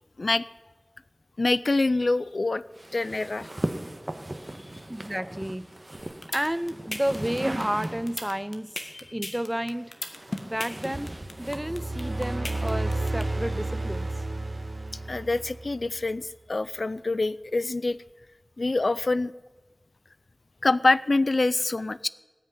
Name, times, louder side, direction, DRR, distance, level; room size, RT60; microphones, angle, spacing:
voice 1, 1.4-2.6 2.9-3.5 8.9-9.0 15.1-18.0 18.6-19.3 20.6-22.1, left 2 dB, 90° left, 17 dB, 0.4 m, -25 dB
sound 1, 2.7-8.4 9.4-13.0, right 1 dB, 40° right, 1.4 m, -38 dB
voice 2, 4.9-5.7 6.3-9.9 10.4-11.1 11.4-14.1, equal, 15° right, 15 dB, 0.6 m, -31 dB
sound 2, 6.0-13.2, left 2 dB, 70° left, 1.8 m, -35 dB
sound 3, 11.3-16.0, right 2 dB, 65° right, 1.3 m, -31 dB
19.0 x 6.4 x 9.8 m, 1.2 s
wide cardioid pair, 45°, 0 cm